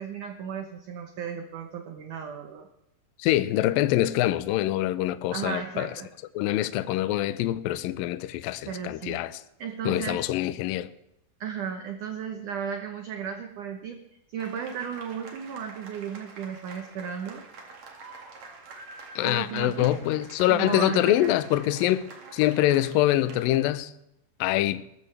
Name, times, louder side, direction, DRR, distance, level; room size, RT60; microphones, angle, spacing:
voice 1, 0.0-2.7 5.3-6.1 8.7-9.2 9.6-10.2 11.4-14.0 14.3-17.4 19.2-19.9 20.5-21.3, right 7 dB, 70° right, 2.0 m, -35 dB
voice 2, 3.2-5.9 6.3-9.4 9.9-10.9 19.2-22.0 22.3-23.9 24.4-24.8, left 14 dB, 85° left, 2.0 m, -25 dB
sound 1, 14.4-23.7, right 3 dB, 50° right, 2.9 m, -47 dB
20.5 x 14.0 x 3.3 m
omnidirectional pair, 4.9 m